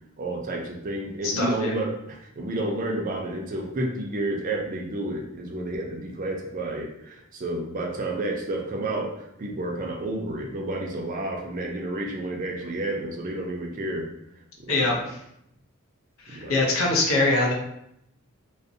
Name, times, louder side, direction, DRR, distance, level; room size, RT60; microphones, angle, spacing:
voice 1, 0.2-9.1 9.4-14.1 14.6-15.0 16.3-16.6, right 1 dB, 40° right, 0 dB, 0.4 m, -30 dB
voice 2, 1.2-1.7 14.7-15.2 16.3-17.5, left 2 dB, 70° left, -1 dB, 0.6 m, -23 dB
2.5 x 2.0 x 2.5 m, 0.77 s
head